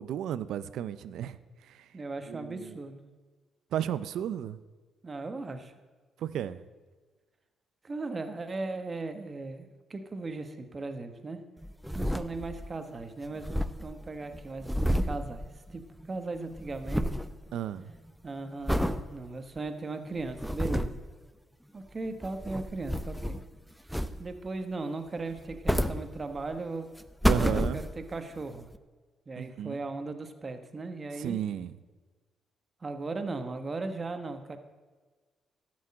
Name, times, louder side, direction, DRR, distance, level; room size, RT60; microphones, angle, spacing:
voice 1, 0.0-1.4 1.6-1.9 2.3-2.8 3.7-4.6 6.2-6.6 17.5-17.9 27.3-27.8 29.4-29.8 31.2-31.7, right 10 dB, 75° right, 15 dB, 0.6 m, -33 dB
voice 2, 1.9-3.1 5.0-5.7 7.8-11.4 11.9-17.3 18.2-21.0 21.7-23.4 24.2-26.9 27.3-28.7 29.3-31.4 32.8-34.6, right 3 dB, 30° right, 8 dB, 1.2 m, -37 dB
sound 1, 11.6-12.8 13.0-13.1 13.3-16.1 16.3-17.3 17.8-18.1 18.7-19.0 19.6-19.7 20.2-21.1 22.1-23.5 23.9-24.5 25.3-26.6 27.0-28.2 28.7-28.8, equal, ahead, 0.6 m, -30 dB
13.0 x 6.3 x 8.6 m, 1.4 s
cardioid pair, 90°, 0 cm